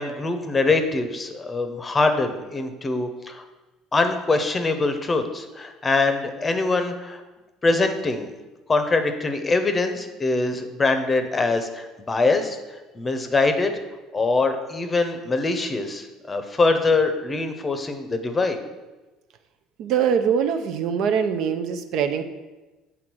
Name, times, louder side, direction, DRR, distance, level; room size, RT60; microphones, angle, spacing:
voice 1, 0.0-3.4 3.9-7.2 7.6-8.3 8.7-12.6 12.9-13.7 14.1-18.6, left 3 dB, 20° left, 7 dB, 0.7 m, -23 dB
voice 2, 19.8-22.2, right 7 dB, 65° right, 8 dB, 0.6 m, -23 dB
7.9 x 3.7 x 6.1 m, 1.1 s
cardioid pair, 125°, 0 cm